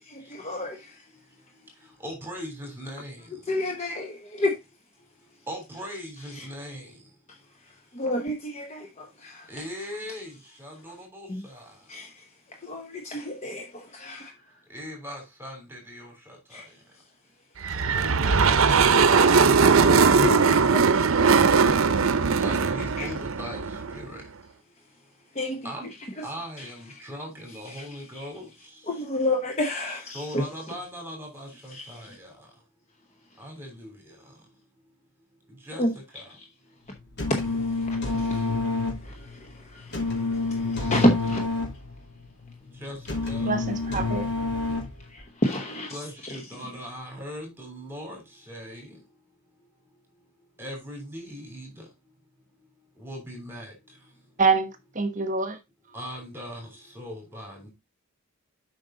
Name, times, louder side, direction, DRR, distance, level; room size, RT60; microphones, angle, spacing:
voice 1, 0.1-1.0 3.5-4.6 6.4-6.5 7.9-9.5 11.3-11.4 11.9-12.2 12.6-14.3 16.5-16.7 18.7-19.1 20.2-20.9 23.0-23.1 25.3-25.7 26.2-26.3 26.6-26.7 27.7-27.9 28.9-30.4 31.7-32.1 35.8-35.9 37.4-37.5 37.8-41.4 45.1-46.0 46.2-46.4, left 1 dB, 30° left, 1.0 m, -30 dB
voice 2, 2.0-3.2 5.5-6.9 9.5-10.3 10.6-11.3 11.5-11.6 14.7-16.4 18.2-19.2 22.4-23.6 23.9-24.2 25.6-25.9 26.2-28.5 30.1-32.1 33.4-33.9 35.7-35.8 42.8-43.0 43.3-43.5 45.9-48.2 48.5-48.9 50.6-51.7 53.0-53.7 55.9-56.7 56.9-57.7, equal, 10° right, 3.1 m, -39 dB
sound 1, 17.6-24.0, right 5 dB, 70° right, 0.7 m, -20 dB
sound 2, 36.9-45.2, left 3 dB, 55° left, 3.3 m, -29 dB
voice 3, 43.4-44.3 54.4-55.6, right 4 dB, 35° right, 1.2 m, -25 dB
7.8 x 5.3 x 3.8 m
head